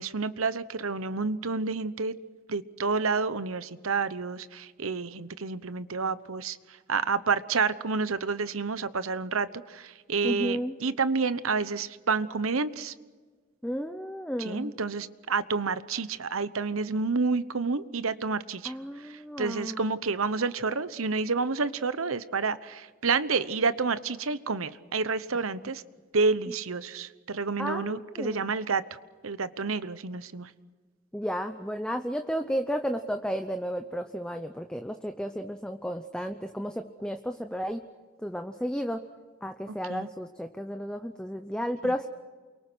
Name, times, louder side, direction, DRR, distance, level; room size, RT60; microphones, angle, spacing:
voice 1, 0.0-2.2 2.5-12.9 14.4-25.8 26.1-28.8 29.2-30.5 39.7-40.1, right 4 dB, 80° right, 14 dB, 1.0 m, -29 dB
voice 2, 10.2-10.8 13.6-14.7 18.6-19.8 26.5-26.6 27.6-28.5 31.1-37.8 38.2-39.0 39.4-42.1, equal, 5° left, 7 dB, 0.7 m, -33 dB
29.0 x 23.5 x 6.2 m, 1.4 s
head